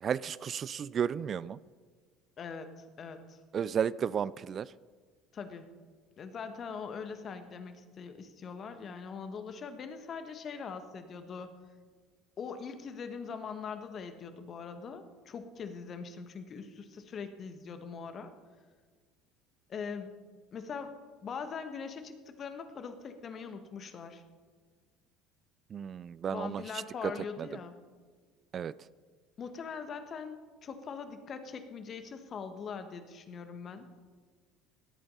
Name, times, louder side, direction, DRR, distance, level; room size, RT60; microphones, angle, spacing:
voice 1, 0.0-1.6 3.5-4.7 25.7-26.6 27.0-27.1 27.4-27.5 28.5-28.7, right 8 dB, 40° right, 19 dB, 0.3 m, -33 dB
voice 2, 2.4-3.4 5.3-5.7 6.2-11.5 12.4-18.3 19.7-20.2 20.5-21.0 21.2-24.2 26.3-27.8 29.4-34.1, left 5 dB, 40° left, 8 dB, 1.4 m, -42 dB
17.5 x 8.6 x 5.5 m, 1.5 s
hypercardioid pair, 65°, 0 cm